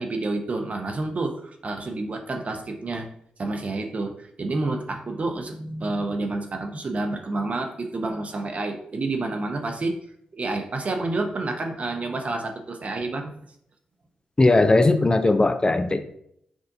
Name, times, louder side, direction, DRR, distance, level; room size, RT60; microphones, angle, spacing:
voice 1, 0.0-3.1 3.4-9.9 10.3-13.3, right 2 dB, 50° right, 4 dB, 0.7 m, -29 dB
voice 2, 14.4-16.0, left 2 dB, 30° left, 9 dB, 0.4 m, -18 dB
6.1 x 2.5 x 2.6 m, 0.71 s
supercardioid pair, 45°, 3 cm